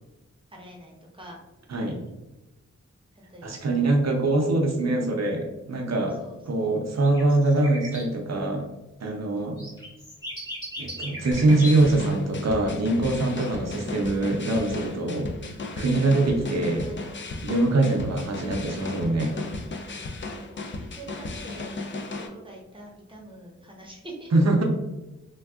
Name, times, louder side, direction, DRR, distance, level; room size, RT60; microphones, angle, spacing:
voice 1, 0.5-1.4 3.3-4.0 6.2-6.8 13.2-13.4 15.1-15.8 16.8-17.2 19.8-24.3, right 1 dB, 15° right, -2 dB, 0.8 m, -46 dB
voice 2, 3.4-6.2 6.5-8.7 9.0-9.7 10.8-15.3 15.8-16.9 17.4-19.4 24.3-24.6, right 2 dB, 60° right, 2 dB, 0.6 m, -23 dB
sound 1, 7.0-8.0 9.6-12.0 13.3-13.4, left 1 dB, 15° left, 1.2 m, -37 dB
sound 2, 11.3-22.3, left 3 dB, 40° left, 0.4 m, -35 dB
3.4 x 2.3 x 2.3 m, 1.0 s
wide cardioid pair, 70°, 29 cm